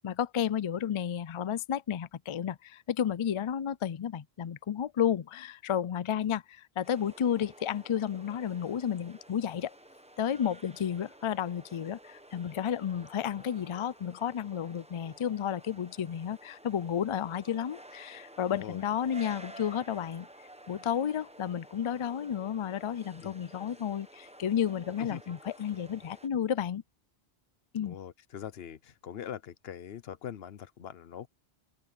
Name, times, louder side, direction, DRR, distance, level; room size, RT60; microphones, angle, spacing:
voice 1, 0.0-9.8 10.2-20.3 20.7-26.8 27.7-28.0, left 9 dB, 55° left, 0.3 m, -32 dB
sound 1, 6.8-26.3, right 1 dB, 5° right, 0.9 m, -52 dB
voice 2, 18.5-18.8 23.2-23.3 25.0-25.2 27.8-31.3, left 9 dB, 70° left, 1.0 m, -42 dB
open air
omnidirectional pair, 1.1 m